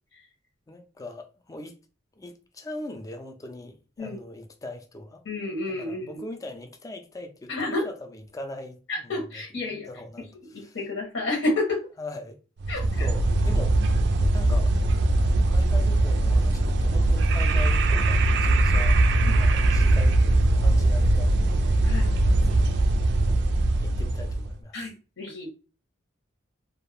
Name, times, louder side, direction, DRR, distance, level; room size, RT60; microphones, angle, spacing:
voice 1, 0.7-1.7 2.2-5.2 5.8-8.8 9.6-10.3 10.6-10.8 12.0-12.4 12.8-14.0 14.3-14.7 15.2-19.0 19.4-21.5 22.3-22.8 23.2-23.5 23.8-24.8, left 2 dB, 15° left, 0.3 m, -40 dB
voice 2, 5.2-6.2 7.5-7.9 8.9-9.9 10.2-11.8 12.7-13.1 19.2-19.4 21.8-22.1 24.7-25.5, left 2 dB, 80° left, 0.8 m, -30 dB
sound 1, 12.6-24.5, right 2 dB, 60° right, 0.3 m, -21 dB
2.4 x 2.0 x 3.2 m
head